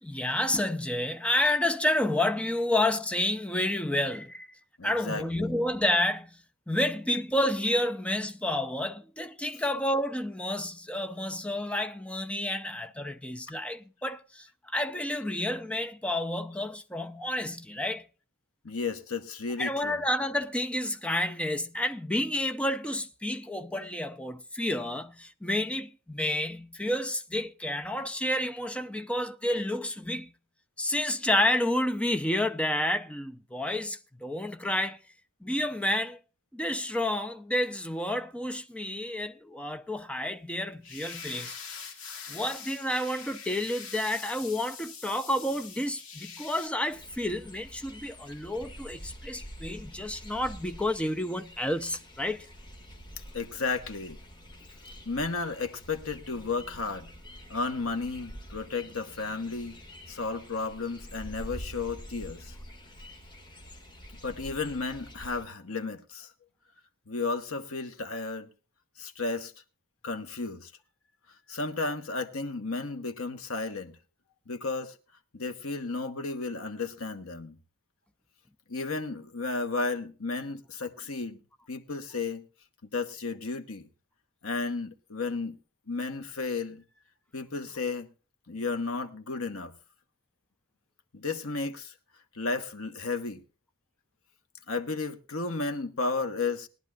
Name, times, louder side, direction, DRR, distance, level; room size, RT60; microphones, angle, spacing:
voice 1, 0.0-4.5 4.8-6.4 6.7-18.0 19.6-30.3 30.8-35.0 35.4-36.2 36.5-41.5 42.3-52.5, left 1 dB, 5° left, 0.6 m, -30 dB
voice 2, 4.8-5.5 18.6-20.0 53.3-54.2 55.0-57.1 57.5-59.8 60.1-62.5 64.2-66.3 67.1-68.5 69.0-69.5 70.0-70.7 71.5-74.0 74.5-74.9 75.3-77.5 78.7-81.4 81.7-82.5 82.9-83.9 84.4-85.6 85.9-86.8 87.3-88.1 88.5-89.7 91.1-91.9 92.3-93.4 94.7-96.7, left 3 dB, 85° left, 1.3 m, -33 dB
sound 1, 40.8-46.7, left 6 dB, 65° left, 2.6 m, -43 dB
sound 2, 46.9-65.5, equal, 25° left, 2.1 m, -47 dB
20.5 x 11.0 x 2.4 m
head